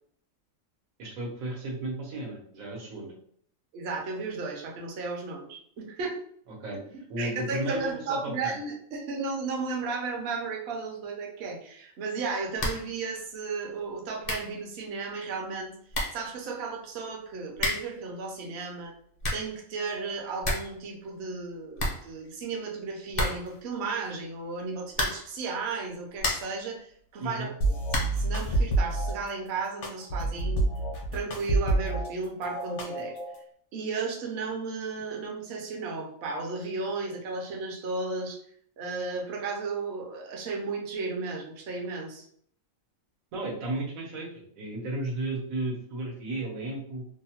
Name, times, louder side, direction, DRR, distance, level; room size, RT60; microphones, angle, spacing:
voice 1, 1.0-3.1 6.5-6.8 7.1-8.6 27.2-27.5 43.3-47.0, right 2 dB, 85° right, -1 dB, 1.2 m, -34 dB
voice 2, 3.7-6.2 7.2-15.7 16.1-18.9 19.3-30.7 31.1-33.1 33.7-38.4 38.8-42.3, right 4 dB, 60° right, 0 dB, 0.8 m, -34 dB
sound 1, 12.6-12.9 13.2-13.3 13.9-14.0 14.2-14.6 15.5-15.6 15.9-16.3 17.5-18.0 18.9-19.6 19.9-20.0 20.2-20.8 21.0-21.1 21.4-21.5 21.8-22.6 23.1-23.6 24.9-25.4 25.9-26.6 27.9-28.3, left 1 dB, 50° left, 0.6 m, -31 dB
sound 2, 27.6-29.1 29.8-32.1 32.4-33.4, right 2 dB, 65° left, 1.0 m, -28 dB
2.8 x 2.0 x 2.7 m, 0.63 s
omnidirectional pair, 1.4 m